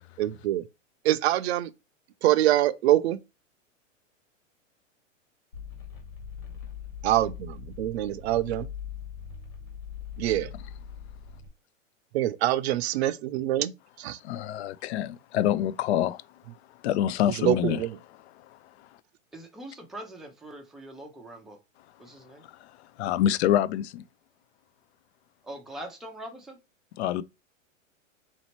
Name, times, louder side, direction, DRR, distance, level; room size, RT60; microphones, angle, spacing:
voice 1, 0.2-0.6 1.0-1.7 2.2-3.2 7.0-8.7 10.2-10.5 12.1-13.7 14.0-14.2 17.4-18.0, right 14 dB, 55° right, 0.5 m, -25 dB
sound 1, 5.5-11.5, left 8 dB, 85° left, 1.9 m, -41 dB
voice 2, 14.2-16.2 16.8-17.8 23.0-24.0 27.0-27.2, left 11 dB, 55° left, 0.5 m, -26 dB
voice 3, 19.3-21.6 22.0-22.4 25.4-26.6, right 1 dB, ahead, 0.4 m, -42 dB
4.2 x 2.8 x 2.9 m
hypercardioid pair, 130°, 39 cm